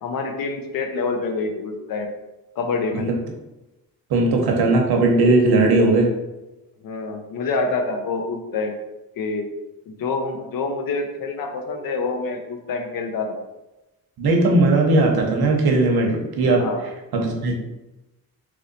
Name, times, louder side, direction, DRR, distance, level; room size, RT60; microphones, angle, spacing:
voice 1, 0.0-2.1 2.6-3.1 6.8-8.8 9.2-9.5 9.9-13.4 16.6-16.9, left 3 dB, 65° left, 4 dB, 0.6 m, -26 dB
voice 2, 4.1-6.1 14.2-16.6 17.1-17.5, right 2 dB, 80° right, 1 dB, 0.9 m, -18 dB
3.1 x 2.7 x 3.9 m, 1.0 s
wide cardioid pair, 170°, 37 cm